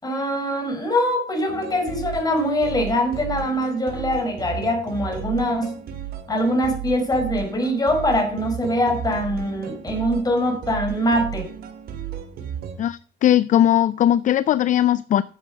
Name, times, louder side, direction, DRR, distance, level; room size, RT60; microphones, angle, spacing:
voice 1, 0.0-5.7 6.3-11.5, equal, 20° left, 4.7 m, -23 dB
sound 1, 1.5-12.8, right 9 dB, 65° right, 2.6 m, -34 dB
voice 2, 12.8-15.2, left 11 dB, 50° left, 0.5 m, -19 dB
10.0 x 7.8 x 7.3 m
cardioid pair, 110°, 17 cm